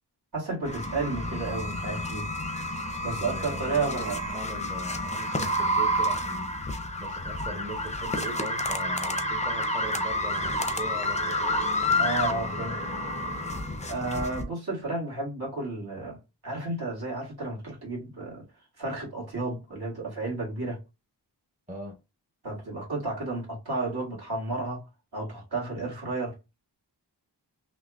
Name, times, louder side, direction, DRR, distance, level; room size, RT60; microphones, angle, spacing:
voice 1, 0.3-2.3 3.0-4.2 12.0-12.8 13.9-16.2 16.4-18.4 18.8-20.8 22.4-24.8 25.1-26.3, right 3 dB, 60° right, 1.9 m, -32 dB
sound 1, 0.7-14.4, left 1 dB, 15° left, 0.5 m, -29 dB
voice 2, 3.2-6.6 7.0-11.6 21.7-22.0, right 1 dB, 20° right, 0.8 m, -40 dB
5.9 x 2.2 x 2.3 m
wide cardioid pair, 85°, 43 cm